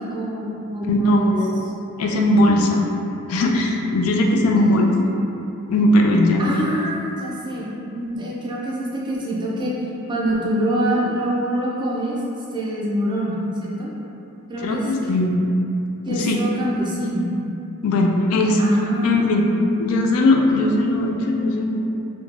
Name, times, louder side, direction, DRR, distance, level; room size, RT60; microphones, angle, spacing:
voice 1, 0.0-1.4 4.6-5.0 6.4-9.7 10.1-12.2 12.5-13.9 14.5-14.9 16.1-17.3 18.6-19.6, equal, 20° right, -6 dB, 0.4 m, -25 dB
voice 2, 0.9-1.7 2.0-2.8 3.3-4.9 5.7-6.7 14.6-15.4 16.1-16.4 17.8-18.6 19.0-19.4 19.8-21.9, left 1 dB, 75° left, 2 dB, 0.3 m, -19 dB
3.0 x 2.1 x 2.5 m, 2.8 s
head